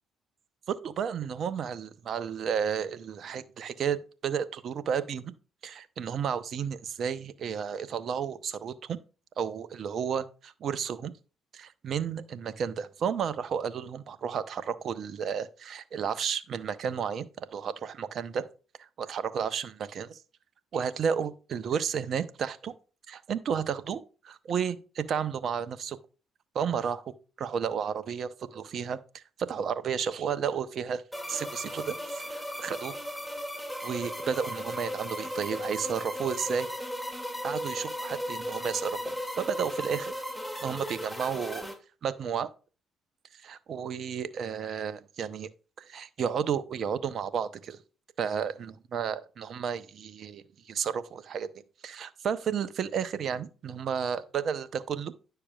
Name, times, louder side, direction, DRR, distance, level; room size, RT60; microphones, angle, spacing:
voice 1, 0.7-5.3 5.6-9.0 9.4-11.1 11.5-18.5 18.8-20.2 20.7-22.7 23.1-26.0 26.5-31.0 31.3-33.0 33.8-36.7 37.4-40.1 40.6-41.7 42.0-42.5 43.3-45.5 45.8-47.8 48.2-51.5 51.8-55.1, right 7 dB, 60° right, 0.7 m, -32 dB
sound 1, 31.1-41.7, equal, 5° left, 2.3 m, -36 dB
10.0 x 6.7 x 2.4 m
hypercardioid pair, 55°, 0 cm